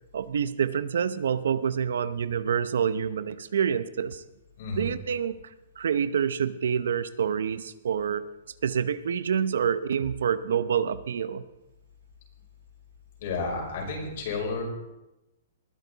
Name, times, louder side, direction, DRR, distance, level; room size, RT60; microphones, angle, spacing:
voice 1, 0.1-4.2 4.8-8.3 8.6-11.4, right 7 dB, 80° right, 14 dB, 0.7 m, -27 dB
voice 2, 4.6-4.9 13.2-14.6, left 4 dB, 50° left, 0 dB, 5.4 m, -31 dB
20.5 x 11.0 x 4.0 m, 0.94 s
hypercardioid pair, 170°, 0 cm